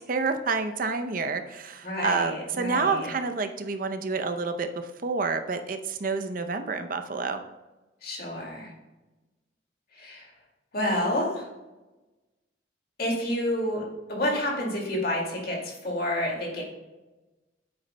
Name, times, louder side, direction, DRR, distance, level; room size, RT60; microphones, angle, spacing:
voice 1, 0.1-7.4, right 4 dB, 50° right, 7 dB, 0.6 m, -29 dB
voice 2, 1.8-3.1 8.0-8.7 10.0-10.3 10.7-11.5 13.0-13.8 14.1-16.6, left 1 dB, 55° left, -1 dB, 2.2 m, -29 dB
9.3 x 7.9 x 2.2 m, 1.1 s
head